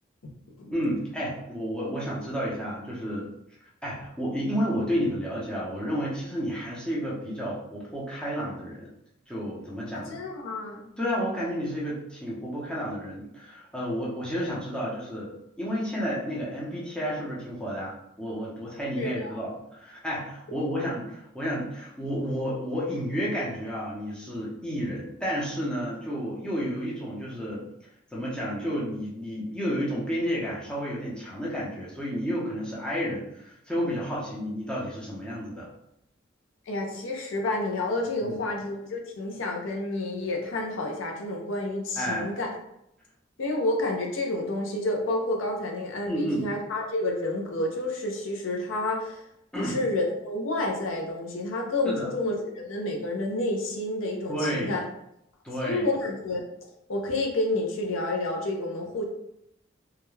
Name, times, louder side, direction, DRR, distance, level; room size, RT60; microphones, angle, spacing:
voice 1, 0.7-3.3 3.8-8.9 9.3-10.2 11.0-15.3 15.6-27.6 28.1-35.7 38.2-38.4 42.0-42.3 46.1-46.5 49.5-49.8 51.8-52.1 54.3-54.7 55.4-55.9, equal, 5° left, -6 dB, 0.6 m, -31 dB
voice 2, 9.9-10.9 19.0-19.4 36.7-42.5 43.4-49.2 49.6-54.8 55.6-56.4 56.9-59.0, left 2 dB, 85° left, 0 dB, 0.5 m, -29 dB
2.3 x 2.1 x 3.1 m, 0.80 s
head